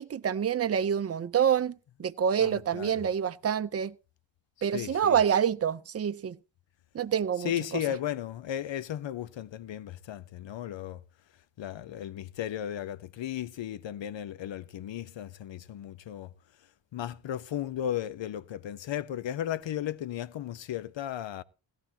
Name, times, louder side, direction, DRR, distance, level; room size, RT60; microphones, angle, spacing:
voice 1, 0.0-3.9 4.6-6.4 6.9-7.8, right 8 dB, 35° right, 0.6 m, -27 dB
voice 2, 2.4-3.1 4.7-5.2 7.4-11.0 11.6-16.3 16.9-21.4, left 11 dB, 80° left, 0.8 m, -35 dB
17.0 x 12.0 x 2.8 m
cardioid pair, 85°, 44 cm